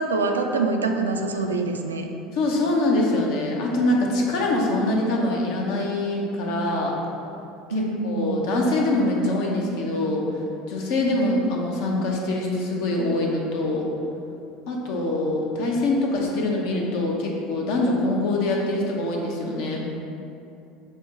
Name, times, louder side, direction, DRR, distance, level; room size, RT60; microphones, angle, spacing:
voice 1, 0.0-2.1 7.7-8.5, right 3 dB, 80° right, 4 dB, 0.3 m, -25 dB
voice 2, 2.3-7.0 7.7-10.3 10.7-13.9 14.7-19.9, left 2 dB, 60° left, -1 dB, 0.7 m, -24 dB
6.4 x 2.1 x 3.5 m, 2.7 s
figure-of-eight pair, 70°, 0 cm